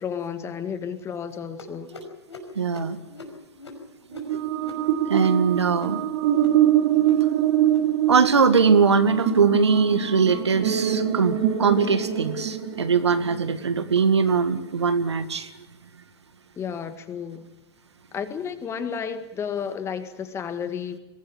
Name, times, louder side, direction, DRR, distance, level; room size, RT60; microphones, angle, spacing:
voice 1, 0.0-1.9 16.6-17.5 18.1-21.0, left 7 dB, 20° left, 9 dB, 1.8 m, -32 dB
sound 1, 1.6-6.6 6.9-7.3 7.6-8.0 8.3-8.6 9.0-9.4 9.8-10.1 10.5-10.8 11.3-11.6 12.2-12.4 13.0-13.2 13.9-14.0 14.8-14.9, left 2 dB, 85° left, 5.6 m, -45 dB
voice 2, 2.6-3.0 4.3-4.4 5.1-6.0 8.1-15.5, right 5 dB, 80° right, 10 dB, 1.9 m, -21 dB
sound 2, 4.1-13.5, right 11 dB, 50° right, 2.8 m, -24 dB
23.0 x 17.5 x 8.8 m, 1.0 s
hypercardioid pair, 115°, 14 cm